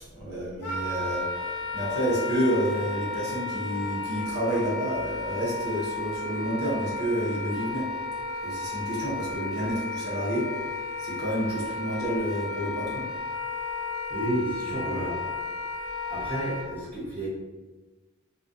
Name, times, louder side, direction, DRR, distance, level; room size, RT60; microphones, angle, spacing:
voice 1, 0.1-7.9 8.4-13.0 14.9-15.1, right 1 dB, 50° right, -6 dB, 0.8 m, -30 dB
Wind instrument woodwind instrument, 0.6-16.7, left 3 dB, 75° left, 0.4 m, -33 dB
voice 2, 14.1-15.2 16.1-17.3, right 1 dB, 10° left, -10 dB, 0.9 m, -31 dB
2.3 x 2.2 x 2.5 m, 1.2 s
head